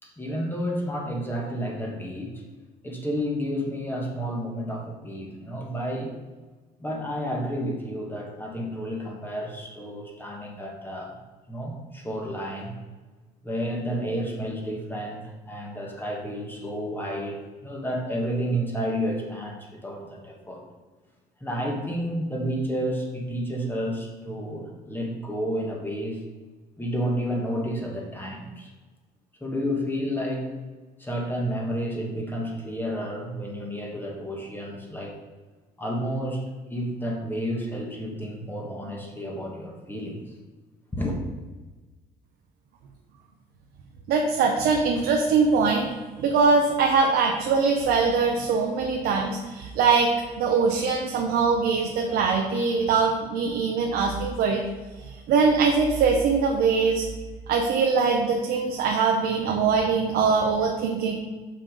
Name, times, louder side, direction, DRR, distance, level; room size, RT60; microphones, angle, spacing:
voice 1, 0.0-2.4 2.8-6.1 6.8-11.2 11.5-12.7 13.4-20.6 21.4-26.2 26.8-28.7 29.4-30.5 31.0-35.1 35.8-36.4 36.7-40.2 40.9-41.2, equal, 10° left, -1 dB, 1.6 m, -31 dB
voice 2, 44.1-45.9 46.2-50.1 50.4-54.6 55.3-57.1 57.5-61.1, right 5 dB, 75° right, 1 dB, 0.9 m, -22 dB
5.8 x 5.7 x 5.1 m, 1.3 s
cardioid pair, 110°, 17 cm